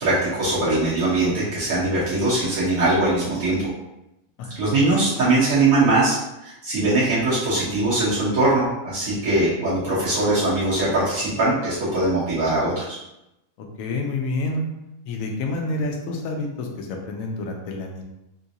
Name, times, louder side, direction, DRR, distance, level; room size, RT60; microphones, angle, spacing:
voice 1, 0.0-3.7 4.6-13.0, right 2 dB, 85° right, -11 dB, 1.6 m, -21 dB
voice 2, 13.8-14.6 15.0-18.0, left 2 dB, 75° left, 2 dB, 1.0 m, -28 dB
3.7 x 2.4 x 2.7 m, 0.90 s
omnidirectional pair, 1.4 m